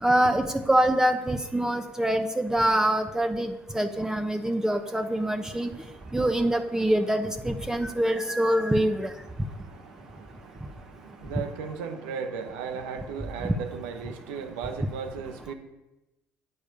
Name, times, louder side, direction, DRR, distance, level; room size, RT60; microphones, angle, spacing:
voice 1, 0.0-5.7 6.1-9.1 13.4-13.5, right 1 dB, 10° right, 5 dB, 1.1 m, -25 dB
voice 2, 4.6-6.3 7.6-8.0 8.5-8.7 9.2-15.5, right 6 dB, 85° right, 6 dB, 1.4 m, -38 dB
10.5 x 8.3 x 6.9 m, 0.98 s
hypercardioid pair, 65°, 6 cm